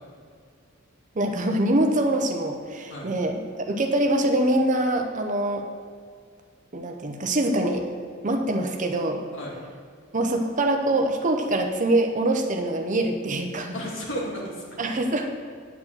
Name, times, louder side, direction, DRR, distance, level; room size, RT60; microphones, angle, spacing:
voice 1, 1.1-3.4 3.7-5.7 6.7-7.9 8.2-9.2 10.1-13.8 14.8-15.3, right 1 dB, 40° right, 4 dB, 0.8 m, -24 dB
voice 2, 9.3-9.7 13.7-14.8, equal, 65° left, -3 dB, 2.3 m, -34 dB
9.3 x 4.5 x 7.3 m, 2.1 s
head